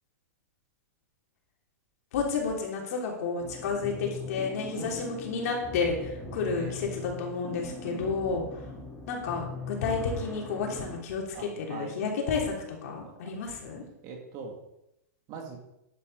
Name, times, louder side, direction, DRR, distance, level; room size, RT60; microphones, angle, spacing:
voice 1, 2.1-8.4 9.1-12.5 12.8-13.8, left 4 dB, 65° left, 0 dB, 3.1 m, -31 dB
sound 1, 3.4-11.0, left 3 dB, 5° left, 3.6 m, -41 dB
voice 2, 4.7-5.1 6.3-6.8 7.8-8.2 11.3-12.0 13.0-13.4 14.0-14.6 15.3-15.6, right 5 dB, 40° right, 2 dB, 2.3 m, -42 dB
10.5 x 8.3 x 4.0 m, 0.85 s
hypercardioid pair, 130°, 9 cm